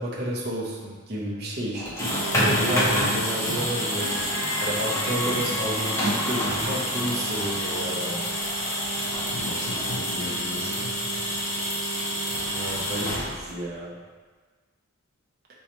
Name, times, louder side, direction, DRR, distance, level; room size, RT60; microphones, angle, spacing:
voice 1, 0.0-4.1 4.6-8.3 12.5-14.0, equal, 45° right, -4 dB, 0.6 m, -31 dB
sound 1, 1.7-10.1, left 1 dB, 40° left, 0.9 m, -37 dB
sound 2, 1.8-13.7, equal, 15° left, 0.5 m, -27 dB
voice 2, 9.3-11.0, left 2 dB, 85° left, 0 dB, 0.5 m, -35 dB
3.9 x 2.2 x 2.9 m, 1.4 s
head